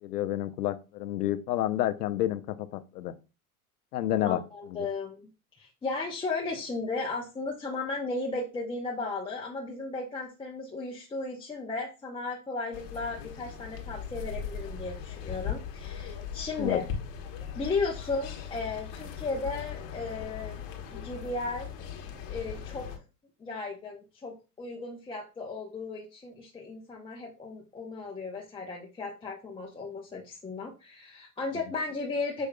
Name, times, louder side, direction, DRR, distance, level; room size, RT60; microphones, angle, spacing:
voice 1, 0.0-3.1 3.9-4.4 16.6-16.8, left 13 dB, 85° left, 11 dB, 0.7 m, -29 dB
voice 2, 4.2-16.8 17.5-20.6 20.9-21.8 22.3-23.0 23.4-32.5, left 3 dB, 10° left, -3 dB, 0.7 m, -35 dB
sound 1, 12.7-23.0, left 7 dB, 55° left, 1.3 m, -39 dB
6.5 x 3.5 x 2.2 m, 0.30 s
hypercardioid pair, 105°, 46 cm